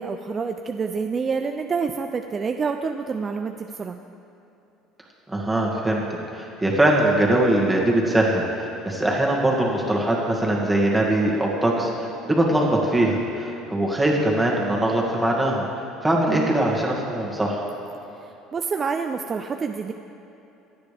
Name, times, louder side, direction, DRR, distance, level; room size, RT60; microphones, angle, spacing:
voice 1, 0.0-4.0 16.3-16.5 18.2-19.9, right 5 dB, 25° right, 5 dB, 0.4 m, -28 dB
voice 2, 5.3-15.7 16.0-17.6, right 1 dB, 5° right, -3 dB, 2.1 m, -22 dB
26.0 x 9.4 x 3.5 m, 2.9 s
cardioid pair, 145°, 0 cm